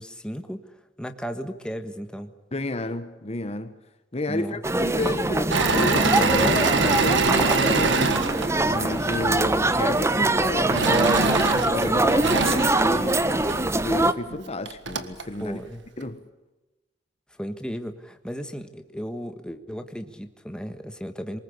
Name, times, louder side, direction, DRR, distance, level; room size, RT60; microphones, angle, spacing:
voice 1, 0.0-2.3 4.3-4.6 15.4-15.8 17.3-21.4, equal, 5° left, 1.5 m, -35 dB
voice 2, 2.5-3.8 4.1-8.3 8.7-13.3 13.8-15.6 16.0-16.3, left 1 dB, 35° left, 1.3 m, -31 dB
sound 1, 4.6-14.1, right 2 dB, 15° right, 0.9 m, -23 dB
Engine / Mechanisms, 5.5-9.3 10.7-13.6 14.3-14.4 14.6-15.2, right 3 dB, 85° right, 1.7 m, -25 dB
24.0 x 21.0 x 8.5 m
head